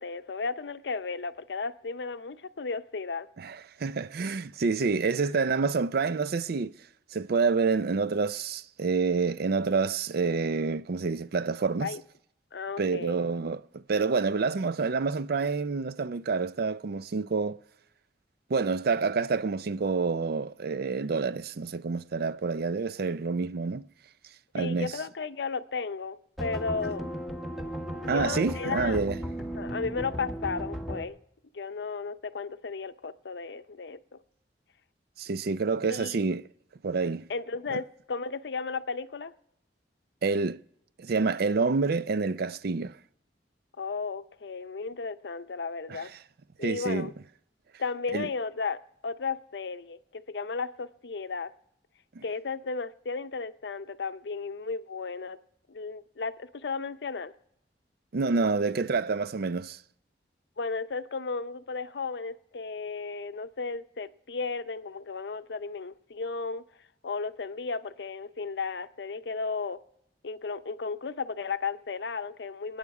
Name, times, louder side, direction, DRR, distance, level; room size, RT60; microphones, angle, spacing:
voice 1, 0.0-3.3 5.2-5.3 11.8-12.0 12.5-13.2 24.6-27.1 28.0-29.0 29.6-31.2 31.5-34.2 35.9-36.2 37.3-39.3 43.8-46.1 46.6-47.1 47.8-51.5 52.2-55.4 55.7-57.3 60.6-66.6 67.0-69.8 70.2-72.8, left 4 dB, 70° left, 0.6 m, -34 dB
voice 2, 3.4-6.7 7.1-11.9 12.8-17.6 18.5-23.8 24.5-24.9 28.1-29.2 35.2-36.4 36.8-37.3 37.7-37.8 40.2-40.6 41.0-43.0 45.9-46.0 46.6-47.1 48.1-48.3 52.2-52.3 58.1-59.8, right 4 dB, 60° right, 0.5 m, -28 dB
sound 1, 26.4-31.0, equal, ahead, 1.4 m, -35 dB
28.5 x 9.5 x 4.8 m
head